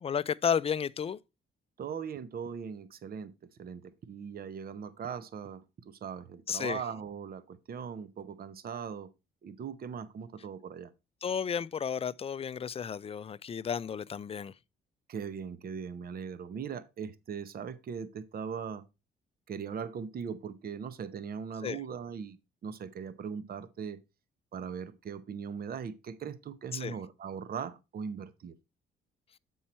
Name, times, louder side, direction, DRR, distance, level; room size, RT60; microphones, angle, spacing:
voice 1, 0.0-1.2 6.5-6.8 11.2-14.5 21.6-21.8 26.7-27.0, left 7 dB, 30° left, 0.4 m, -32 dB
voice 2, 1.8-3.3 3.6-9.1 9.4-10.9 15.1-18.8 19.5-24.0 24.5-28.5, right 7 dB, 50° right, 0.8 m, -40 dB
7.4 x 5.5 x 4.2 m
cardioid pair, 90°, 20 cm